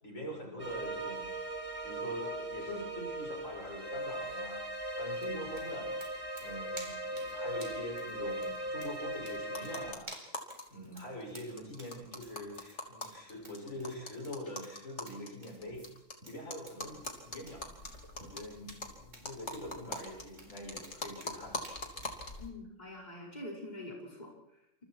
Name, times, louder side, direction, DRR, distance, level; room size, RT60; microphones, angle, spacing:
voice 1, 0.0-1.3 1.8-4.6 5.0-5.9 6.4-10.1 10.7-15.9 16.3-17.7 18.2-21.7, equal, 80° left, -1 dB, 7.4 m, -44 dB
sound 1, 0.6-9.9, right 1 dB, 45° right, 2.9 m, -39 dB
sound 2, 5.1-22.2, right 1 dB, 70° right, 4.9 m, -54 dB
sound 3, 9.5-10.6 10.9-11.0 11.2-11.3 11.6-16.1 16.5-22.5, left 2 dB, 60° left, 3.6 m, -43 dB
voice 2, 22.4-24.8, left 1 dB, 30° left, -2 dB, 6.0 m, -45 dB
28.5 x 27.5 x 4.7 m, 0.81 s
omnidirectional pair, 1.3 m